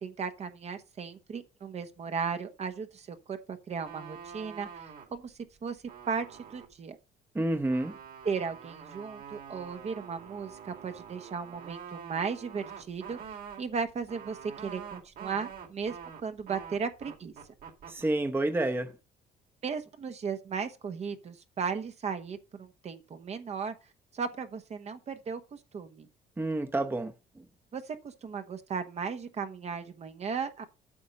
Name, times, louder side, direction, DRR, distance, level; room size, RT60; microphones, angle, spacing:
voice 1, 0.0-5.3 5.6-7.0 8.2-13.2 13.6-17.3 19.6-23.7 24.1-26.1 27.7-30.6, right 5 dB, 40° right, 1.1 m, -36 dB
cut split blow dandelion, 3.8-5.2 5.6-6.7 7.5-18.0, right 7 dB, 60° right, 2.3 m, -46 dB
voice 2, 7.3-7.9 17.9-18.9 26.4-27.1, right 2 dB, 15° right, 0.9 m, -29 dB
8.6 x 6.2 x 5.3 m
cardioid pair, 110°, 17 cm